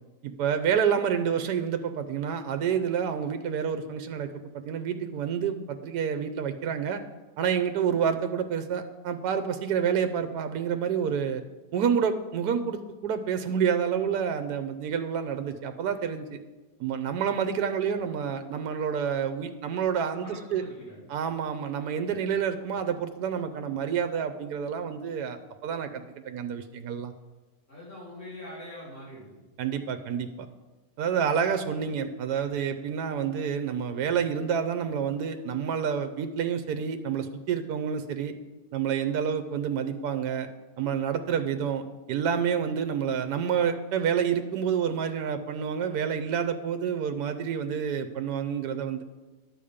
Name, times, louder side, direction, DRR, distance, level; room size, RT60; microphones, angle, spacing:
voice 1, 0.2-4.3 4.7-7.0 7.4-11.4 11.7-16.4 16.8-20.6 21.1-27.1 29.6-30.5 31.0-38.3 38.7-40.5 40.8-49.0, right 7 dB, 75° right, 8 dB, 1.2 m, -28 dB
voice 2, 20.2-21.1 27.7-29.4, left 1 dB, 60° left, -8 dB, 3.6 m, -43 dB
11.0 x 7.0 x 5.0 m, 1.2 s
omnidirectional pair, 1.8 m